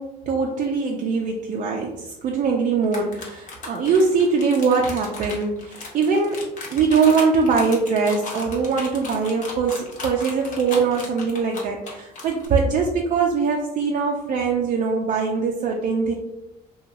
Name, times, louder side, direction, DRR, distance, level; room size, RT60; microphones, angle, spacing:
voice 1, 0.0-16.1, right 5 dB, 50° right, 0 dB, 0.4 m, -22 dB
sound 1, 2.8-12.5, left 3 dB, 50° left, 0.8 m, -36 dB
2.8 x 2.3 x 2.5 m, 0.92 s
cardioid pair, 110°, 17 cm